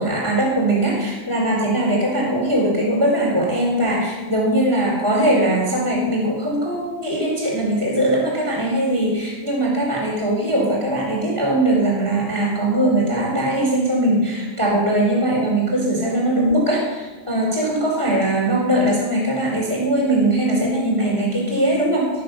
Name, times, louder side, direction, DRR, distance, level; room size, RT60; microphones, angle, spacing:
voice 1, 0.0-22.1, right 1 dB, 5° left, -3 dB, 3.0 m, -20 dB
14.5 x 6.9 x 6.7 m, 1.2 s
omnidirectional pair, 5.6 m